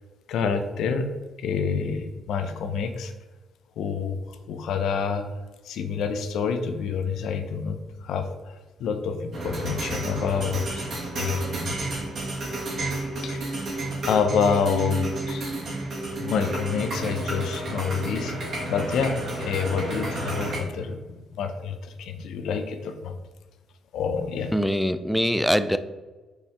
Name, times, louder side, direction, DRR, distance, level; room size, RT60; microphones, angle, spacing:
voice 1, 0.3-1.0 1.4-3.1 3.8-4.2 4.5-5.3 5.6-10.8 11.1-11.8 13.2-13.6 14.0-15.4 16.2-18.3 18.7-23.1 23.9-24.5, left 6 dB, 80° left, 8 dB, 0.7 m, -27 dB
sound 1, 9.3-20.6, right 2 dB, 60° right, 2.1 m, -31 dB
voice 2, 24.5-25.8, equal, ahead, 11 dB, 0.4 m, -23 dB
5.3 x 4.7 x 4.3 m, 1.2 s
cardioid pair, 90°, 0 cm